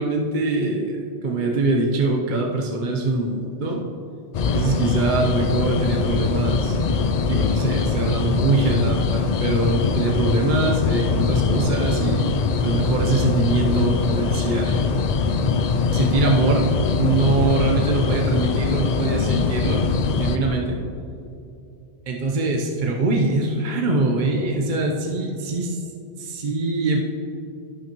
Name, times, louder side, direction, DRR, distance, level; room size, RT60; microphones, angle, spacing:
voice 1, 0.0-3.8 4.5-6.8 7.3-14.8 15.9-16.7 17.0-19.8 20.2-20.8 22.1-25.8 26.2-27.0, right 2 dB, 45° right, 0 dB, 0.9 m, -23 dB
sound 1, 4.3-20.4, left 4 dB, 65° left, 0.4 m, -22 dB
11.5 x 9.9 x 3.0 m, 2.7 s
omnidirectional pair, 1.3 m